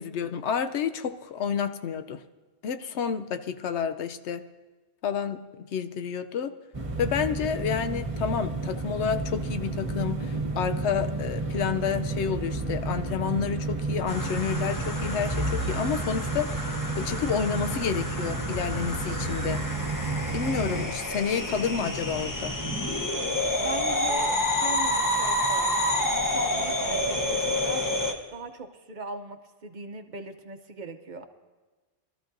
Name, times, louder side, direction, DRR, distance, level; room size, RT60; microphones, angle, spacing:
voice 1, 0.0-2.2 2.6-4.4 5.0-6.5 7.0-19.6 20.3-22.6, left 7 dB, 90° left, 9 dB, 0.9 m, -30 dB
sound 1, 6.7-20.9, right 3 dB, 30° right, 1.1 m, -31 dB
sound 2, 14.1-28.1, left 1 dB, 20° left, 0.9 m, -29 dB
voice 2, 23.6-27.8 28.3-31.2, right 3 dB, 50° right, 7 dB, 0.8 m, -39 dB
22.5 x 13.0 x 2.6 m, 1.3 s
omnidirectional pair, 1.1 m